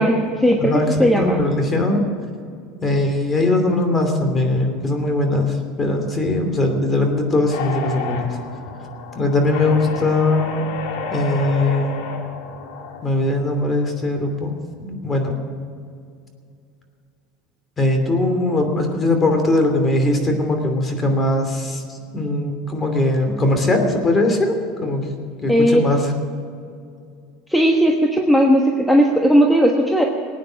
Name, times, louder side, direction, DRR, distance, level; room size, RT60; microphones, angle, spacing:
voice 1, 0.0-1.4 25.5-25.8 27.5-30.0, equal, ahead, 1 dB, 1.3 m, -16 dB
voice 2, 0.6-2.0 2.8-8.4 9.1-10.6 11.1-12.0 13.0-15.4 17.8-21.8 22.1-25.1 25.4-26.1, left 2 dB, 20° left, 5 dB, 2.8 m, -20 dB
sound 1, 7.5-13.1, left 5 dB, 75° left, 2.3 m, -31 dB
19.5 x 9.4 x 6.3 m, 2.3 s
supercardioid pair, 125°, 0 cm